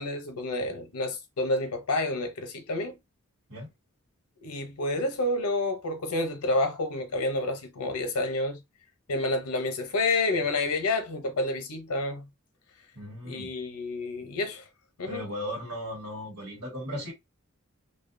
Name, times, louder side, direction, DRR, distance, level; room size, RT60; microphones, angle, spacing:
voice 1, 0.0-3.0 4.4-8.6 9.1-12.3 13.2-14.6 15.0-15.2, left 2 dB, 90° left, 0.7 m, -29 dB
voice 2, 12.9-13.5 15.0-17.1, equal, 85° right, 1.6 m, -37 dB
2.6 x 2.2 x 2.5 m
head